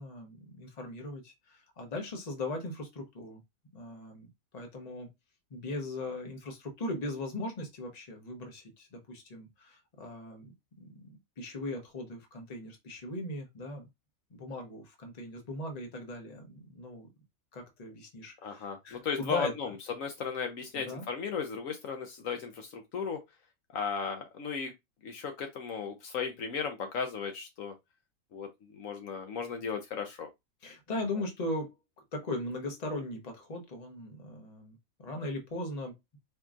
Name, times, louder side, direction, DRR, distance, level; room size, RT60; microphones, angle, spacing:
voice 1, 0.0-3.4 3.7-5.1 5.5-13.9 14.3-17.1 17.5-19.5 20.7-21.1 30.6-31.7 32.1-35.9, left 2 dB, 30° left, 1.0 m, -39 dB
voice 2, 18.4-19.7 20.0-23.2 23.7-24.7 25.0-27.7 28.3-30.3, left 5 dB, 70° left, 1.1 m, -36 dB
4.4 x 2.8 x 2.4 m
omnidirectional pair, 1.5 m